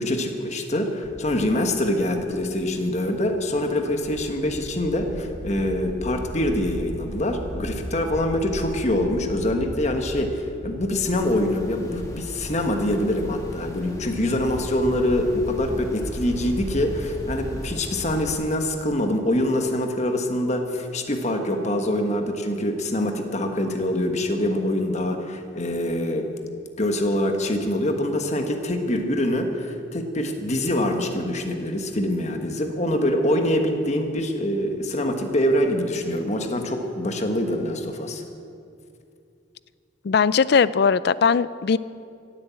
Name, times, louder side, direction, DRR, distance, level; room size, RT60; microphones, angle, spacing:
voice 1, 0.0-26.3 26.8-38.2, left 1 dB, 35° left, 5 dB, 1.3 m, -24 dB
sound 1, 1.0-17.7, equal, 35° right, 1.5 m, -38 dB
sound 2, 11.0-18.4, equal, 15° left, 1.9 m, -38 dB
voice 2, 40.0-41.8, left 6 dB, 55° left, 18 dB, 0.4 m, -19 dB
16.0 x 8.7 x 8.3 m, 2.5 s
head